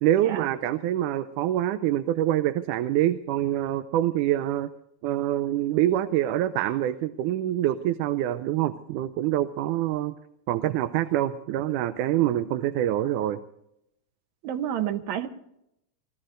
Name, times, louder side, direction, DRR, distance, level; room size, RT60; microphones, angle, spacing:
voice 1, 0.0-4.7 5.0-10.1 10.5-13.4, right 13 dB, 85° right, 12 dB, 2.2 m, -25 dB
voice 2, 14.4-15.3, right 10 dB, 70° right, 10 dB, 2.2 m, -29 dB
25.5 x 18.5 x 2.6 m, 0.81 s
omnidirectional pair, 3.5 m